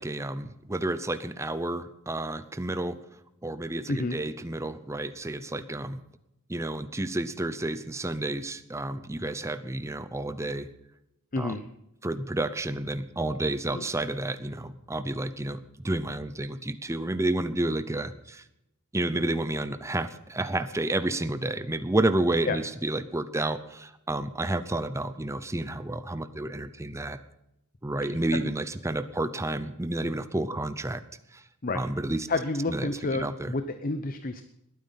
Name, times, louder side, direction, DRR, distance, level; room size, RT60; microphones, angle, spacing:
voice 1, 0.0-3.0 3.4-6.0 6.5-10.7 11.4-11.5 12.0-18.4 18.9-27.2 27.8-31.0 31.3-31.4 31.7-32.3 32.7-33.5, right 2 dB, 15° right, 12 dB, 0.7 m, -30 dB
voice 2, 3.9-4.2 11.3-11.6 13.7-13.8 22.5-22.6 28.3-28.5 31.6-31.8 32.3-34.4, left 2 dB, 40° left, 9 dB, 0.8 m, -30 dB
20.5 x 9.2 x 5.8 m, 0.87 s
head